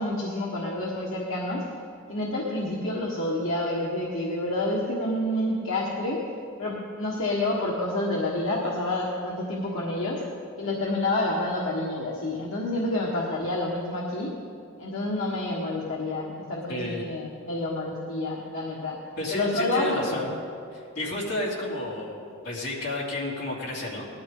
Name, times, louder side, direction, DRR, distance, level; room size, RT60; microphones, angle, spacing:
voice 1, 0.0-1.6 2.1-6.2 6.6-10.2 10.6-14.3 14.8-19.0 19.3-20.3, left 1 dB, 70° left, -4 dB, 1.5 m, -28 dB
voice 2, 16.7-17.0 19.2-20.3 20.7-24.1, left 1 dB, 50° left, -5 dB, 3.2 m, -31 dB
19.0 x 12.5 x 3.8 m, 2.4 s
head